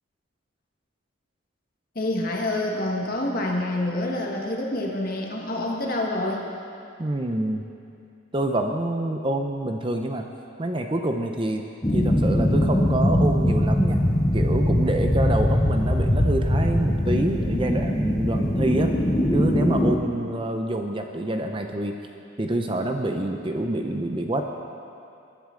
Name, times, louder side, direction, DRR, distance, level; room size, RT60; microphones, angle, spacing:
voice 1, 1.9-6.5, left 1 dB, 45° left, -1 dB, 1.6 m, -27 dB
voice 2, 7.0-7.6 8.3-10.3 10.6-11.6 11.9-14.0 14.3-18.9 19.3-22.0 22.4-24.4, right 1 dB, 25° right, 4 dB, 0.5 m, -26 dB
sound 1, 11.8-20.0, left 1 dB, 20° left, 0.8 m, -22 dB
20.0 x 10.5 x 3.8 m, 2.6 s
head